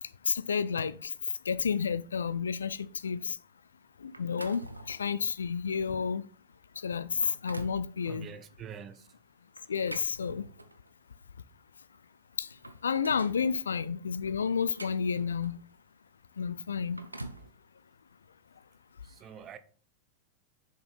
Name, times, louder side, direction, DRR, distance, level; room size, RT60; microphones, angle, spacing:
voice 1, 0.0-1.1 1.4-3.4 4.0-6.3 6.8-8.3 9.7-10.5 12.4-15.6 16.4-17.1, left 6 dB, 70° left, 0.4 m, -31 dB
sound 1, 4.1-5.2 5.7-5.9 6.5-6.6 7.0-7.9 9.6-10.9 11.9-12.0 12.4-13.4 14.3-15.7 16.7-17.5, right 1 dB, 85° right, 0.6 m, -45 dB
voice 2, 8.1-9.1 19.0-19.6, right 8 dB, 30° right, 0.7 m, -45 dB
6.8 x 5.2 x 4.1 m
figure-of-eight pair, 90°, 0 cm